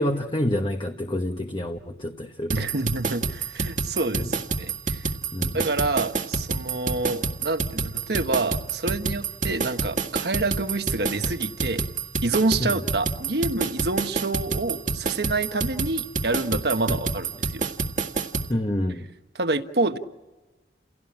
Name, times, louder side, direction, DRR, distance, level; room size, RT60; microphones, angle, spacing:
voice 1, 0.0-2.5 5.3-5.6 16.9-17.0 18.5-19.0, left 1 dB, 30° left, 4 dB, 1.2 m, -27 dB
sound 1, 2.5-18.5, right 4 dB, 45° right, 1.7 m, -27 dB
voice 2, 2.5-5.1 5.5-11.9 12.2-17.7 18.9-19.0 19.3-20.0, right 2 dB, 65° right, 8 dB, 1.4 m, -27 dB
30.0 x 17.5 x 8.7 m, 1.2 s
head